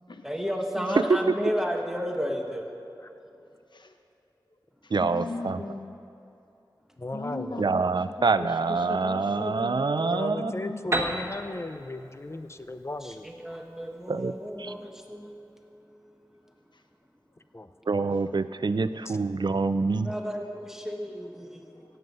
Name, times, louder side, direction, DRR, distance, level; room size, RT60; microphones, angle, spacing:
voice 1, 0.2-2.7 9.3-10.1 11.1-11.2 13.0-15.8 20.0-21.8, equal, 5° right, 1 dB, 1.4 m, -33 dB
voice 2, 0.8-1.1 1.4-1.5 3.4-4.0 4.8-6.0 7.1-7.9 8.2-9.8 10.2-10.8 16.7-16.8, left 2 dB, 70° left, 6 dB, 1.0 m, -38 dB
voice 3, 4.9-5.6 7.6-10.5 14.1-14.3 14.6-14.7 17.9-20.1, right 4 dB, 65° right, 13 dB, 0.5 m, -26 dB
voice 4, 7.0-7.6 9.8-13.3 17.5-17.7 19.1-19.2, left 2 dB, 35° left, 10 dB, 0.7 m, -36 dB
Piano, 10.9-14.6, right 1 dB, 35° right, 1.4 m, -34 dB
17.0 x 7.9 x 5.5 m, 2.8 s
cardioid pair, 40°, 8 cm